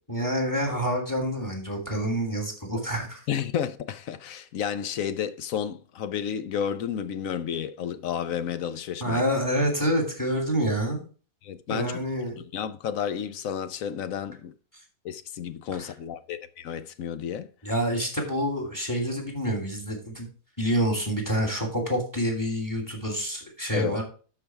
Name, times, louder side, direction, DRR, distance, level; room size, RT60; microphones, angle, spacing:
voice 1, 0.1-3.2 9.0-11.0 11.7-12.4 15.8-15.9 17.6-20.3 20.6-24.0, equal, 15° left, 2.9 m, -27 dB
voice 2, 3.3-9.2 11.4-12.0 12.4-14.5 15.0-17.5 23.7-24.0, left 8 dB, 70° left, 1.1 m, -31 dB
12.5 x 4.8 x 4.7 m
omnidirectional pair, 1.5 m